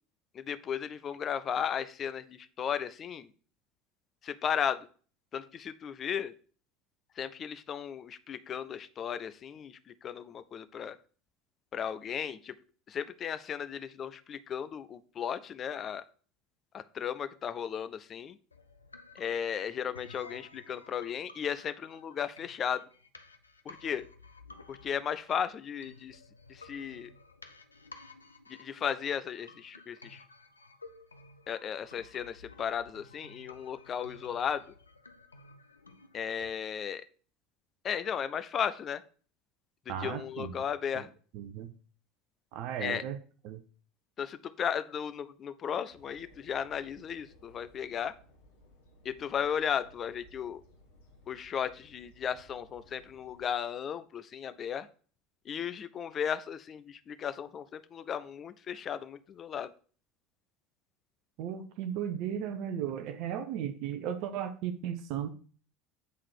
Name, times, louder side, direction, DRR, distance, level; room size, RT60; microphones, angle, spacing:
voice 1, 0.3-3.3 4.2-4.9 5.3-6.3 7.2-11.0 11.7-12.5 12.9-16.0 16.7-18.4 19.1-22.8 23.6-24.1 24.7-26.2 26.5-27.1 28.5-30.2 31.5-34.6 36.1-37.0 37.8-39.0 40.0-41.1 42.8-43.0 44.2-48.1 49.0-50.6 51.3-54.9 55.4-59.7, left 8 dB, 35° left, 13 dB, 0.6 m, -35 dB
sound 1, 18.5-36.5, left 3 dB, 85° left, 0.5 m, -54 dB
voice 2, 39.9-40.5 41.3-41.7 42.5-43.2 43.4-43.6 61.4-65.3, right 9 dB, 55° right, 9 dB, 0.7 m, -35 dB
sound 2, 45.9-53.5, left 1 dB, 70° left, 1.6 m, -60 dB
8.2 x 3.8 x 4.8 m, 0.41 s
figure-of-eight pair, 70°, 0 cm